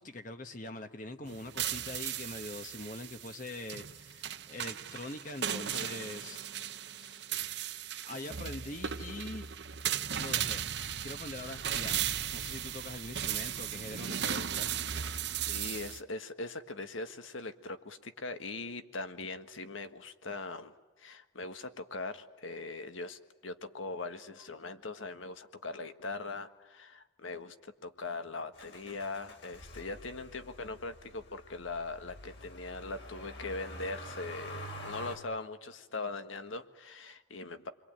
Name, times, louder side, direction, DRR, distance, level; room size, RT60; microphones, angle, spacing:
voice 1, 0.0-6.4 7.0-7.3 8.0-9.5 10.2-10.7 11.0-14.7, left 2 dB, 40° left, 7 dB, 1.1 m, -43 dB
sound 1, 1.3-16.0, right 9 dB, 60° right, 0.9 m, -36 dB
voice 2, 15.5-37.7, left 3 dB, 85° left, 9 dB, 1.6 m, -41 dB
Motor vehicle (road), 28.6-35.2, equal, 60° left, 4.2 m, -47 dB
29.0 x 22.5 x 9.0 m, 1.2 s
head